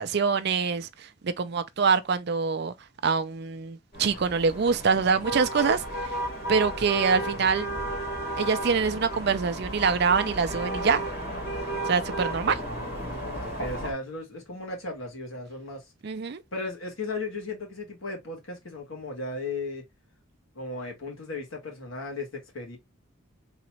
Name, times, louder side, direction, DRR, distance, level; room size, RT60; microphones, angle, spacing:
voice 1, 0.0-2.7 3.0-6.2 6.5-7.8 8.4-11.0 11.9-12.6 16.0-16.4, right 5 dB, 50° right, 0.4 m, -25 dB
sound 1, 3.9-13.9, right 1 dB, 50° left, 1.9 m, -33 dB
voice 2, 12.5-15.9 16.5-19.8 20.5-22.8, left 2 dB, 75° left, 1.8 m, -36 dB
4.0 x 3.0 x 2.8 m
head